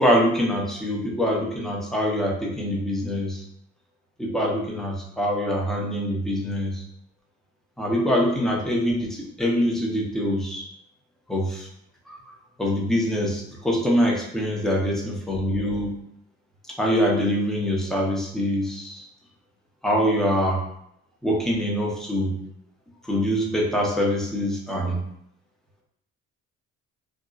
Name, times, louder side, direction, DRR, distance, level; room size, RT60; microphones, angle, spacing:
voice 1, 0.0-3.4 4.2-6.8 7.8-10.6 11.3-11.7 12.1-16.0 16.8-19.1 19.8-20.6 21.2-22.4 23.0-25.0, equal, ahead, -3 dB, 0.6 m, -24 dB
2.6 x 2.0 x 2.3 m, 0.73 s
supercardioid pair, 75°, 33 cm